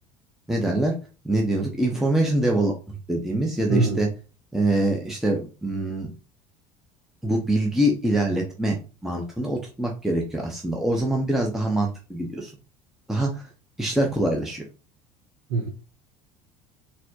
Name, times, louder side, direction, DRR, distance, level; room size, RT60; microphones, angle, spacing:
voice 1, 0.5-1.0 1.2-4.1 4.5-6.1 7.2-8.8 9.0-12.5 13.1-13.5 13.8-14.6, right 1 dB, ahead, 0.6 m, -24 dB
voice 2, 3.7-4.1 15.5-15.7, right 3 dB, 60° right, 0.7 m, -23 dB
4.1 x 2.1 x 2.7 m
figure-of-eight pair, 65°, 20 cm